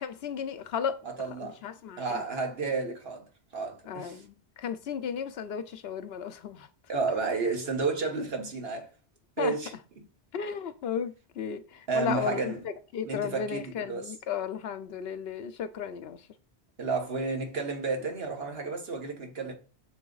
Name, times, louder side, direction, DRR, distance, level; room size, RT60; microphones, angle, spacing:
voice 1, 0.0-1.0 1.4-2.2 3.9-6.7 9.4-9.5 10.3-11.6 11.9-12.5 12.9-16.2, left 7 dB, 70° left, 0.8 m, -34 dB
voice 2, 1.0-1.6 2.0-3.3 3.5-4.2 6.9-8.9 9.4-10.0 11.9-12.7 13.0-14.1 16.8-19.5, right 4 dB, 65° right, 1.5 m, -31 dB
6.9 x 3.5 x 3.9 m
omnidirectional pair, 1.1 m